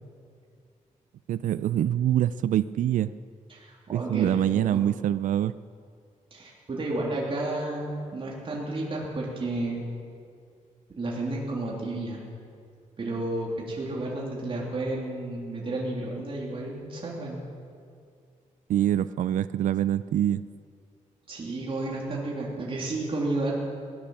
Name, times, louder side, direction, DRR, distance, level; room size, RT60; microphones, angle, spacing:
voice 1, 1.3-3.1 3.9-5.6 18.7-20.4, right 11 dB, 75° right, 15 dB, 0.4 m, -25 dB
voice 2, 3.5-4.8 6.3-9.9 10.9-12.2 13.0-17.4 21.3-23.5, right 2 dB, 40° right, -4 dB, 3.1 m, -32 dB
17.0 x 11.0 x 7.1 m, 2.3 s
cardioid pair, 110°, 13 cm